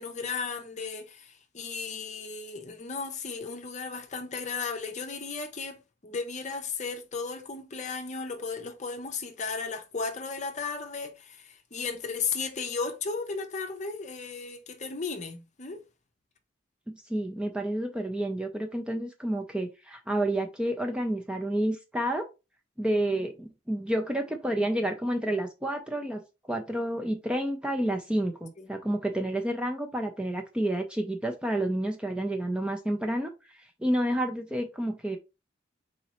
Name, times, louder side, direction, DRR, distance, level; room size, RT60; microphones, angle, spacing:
voice 1, 0.0-15.8 28.6-28.7, left 4 dB, 35° left, 0.7 m, -35 dB
voice 2, 16.9-22.3 22.8-26.2 26.5-35.2, right 1 dB, 5° right, 0.5 m, -30 dB
4.1 x 3.7 x 3.0 m
head